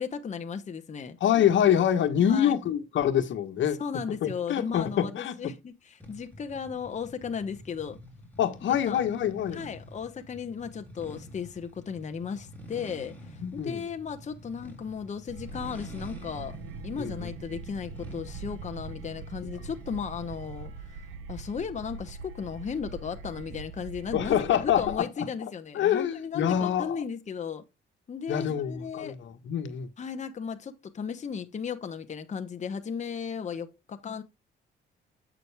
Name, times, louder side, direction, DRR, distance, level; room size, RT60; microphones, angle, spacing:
voice 1, 0.0-1.2 2.2-2.5 3.8-8.0 8.9-9.0 9.5-16.6 16.8-21.0 21.3-27.6 28.1-29.2 30.0-34.2, left 6 dB, 35° left, 1.0 m, -35 dB
voice 2, 1.2-3.8 4.2-5.3 8.4-9.6 13.4-13.8 17.0-17.3 24.1-25.0 25.7-27.0 28.3-29.9, left 9 dB, 70° left, 1.4 m, -26 dB
sound 1, 6.0-20.7, equal, 10° left, 3.8 m, -48 dB
sound 2, 15.3-25.0, right 5 dB, 90° right, 1.1 m, -42 dB
8.3 x 6.0 x 3.4 m
cardioid pair, 90°, 20 cm